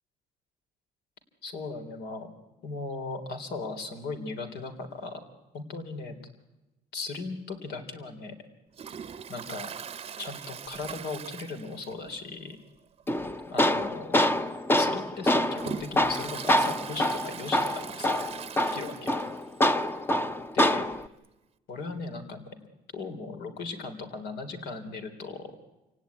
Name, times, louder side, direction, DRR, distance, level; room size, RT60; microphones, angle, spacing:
voice 1, 1.4-2.3 2.6-5.2 5.5-6.2 6.9-8.4 9.3-9.7 10.2-12.6 13.5-14.2 14.8-18.2 18.7-19.2 20.5-21.0 21.7-22.5 22.9-25.5, left 3 dB, 75° left, 7 dB, 3.7 m, -37 dB
Toilet flush, 8.7-12.2 12.5-12.6 13.0-13.1 13.9-14.0 14.6-19.5 19.8-19.9 20.1-20.2 21.2-21.3, right 7 dB, 35° right, 0.8 m, -41 dB
Tools, 13.1-21.1, left 1 dB, 15° left, 0.8 m, -26 dB
28.0 x 17.5 x 9.6 m, 1.1 s
cardioid pair, 110°, 17 cm